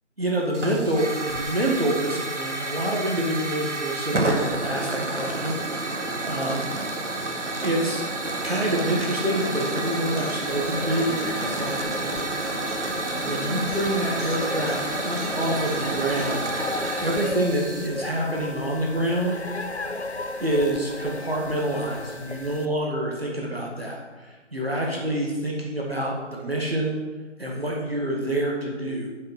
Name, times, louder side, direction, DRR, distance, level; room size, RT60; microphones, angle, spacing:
voice 1, 0.2-5.9 6.3-6.7 7.6-8.0 8.4-12.3 13.1-16.5 17.0-19.4 20.4-27.0 27.4-29.1, right 1 dB, 50° right, -2 dB, 1.8 m, -27 dB
Hiss / Fire, 0.5-17.9, right 2 dB, 70° right, 1.2 m, -30 dB
Acoustic guitar, 8.5-16.4, left 2 dB, 40° left, 2.7 m, -40 dB
sound 1, 10.5-22.6, left 2 dB, 60° left, 0.7 m, -35 dB
8.8 x 6.0 x 5.7 m, 1.3 s
figure-of-eight pair, 180°, 37 cm